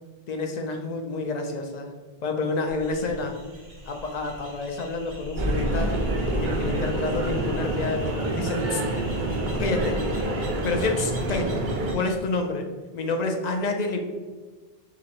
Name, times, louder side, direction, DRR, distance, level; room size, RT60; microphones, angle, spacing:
voice 1, 0.3-1.9 2.2-3.3 3.9-6.0 6.4-8.8 9.6-10.0 10.6-11.6 11.9-12.7 12.9-14.0, left 3 dB, 50° left, 4 dB, 0.6 m, -28 dB
sound 1, 2.7-12.2, equal, 75° right, 1.2 m, -36 dB
sound 2, 2.8-11.4, equal, 40° right, 1.0 m, -48 dB
sound 3, 5.4-12.0, right 2 dB, 55° right, 0.7 m, -28 dB
4.9 x 3.1 x 2.8 m, 1.3 s
omnidirectional pair, 1.0 m